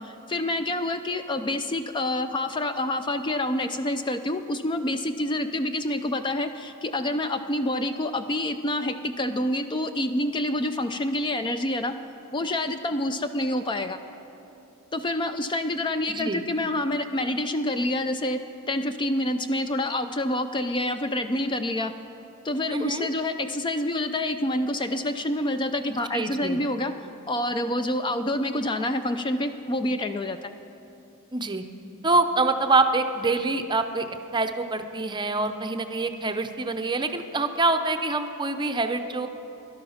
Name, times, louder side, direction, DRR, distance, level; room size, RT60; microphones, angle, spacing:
voice 1, 0.0-11.9 12.3-14.0 14.9-18.4 18.7-21.9 22.4-26.9 27.3-30.5, left 1 dB, 20° left, 9 dB, 0.4 m, -27 dB
voice 2, 16.1-16.4 22.7-23.1 26.1-26.6 31.3-31.6 32.0-34.1 34.3-39.3, right 3 dB, 20° right, 7 dB, 0.6 m, -25 dB
17.0 x 11.5 x 5.7 m, 2.9 s
head